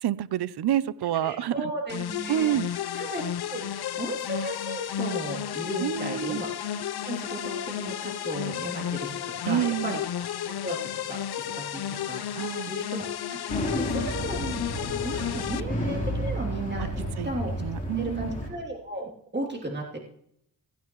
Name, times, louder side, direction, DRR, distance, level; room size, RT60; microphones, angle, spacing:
voice 1, 0.0-1.7 2.3-2.7 5.8-6.4 9.4-10.0 12.3-12.7 16.8-16.9 17.2-17.3 17.6-18.3, right 11 dB, 65° right, 17 dB, 0.6 m, -28 dB
voice 2, 1.0-2.5 2.9-3.2 3.5-3.6 4.0-10.0 10.6-14.6 15.0-17.5 18.0-20.0, right 1 dB, 25° right, -1 dB, 3.0 m, -35 dB
sound 1, 1.9-15.6, left 10 dB, 65° left, 0.7 m, -32 dB
sound 2, 13.5-18.5, equal, 20° left, 3.5 m, -31 dB
16.5 x 15.5 x 3.1 m, 0.72 s
wide cardioid pair, 110°, 42 cm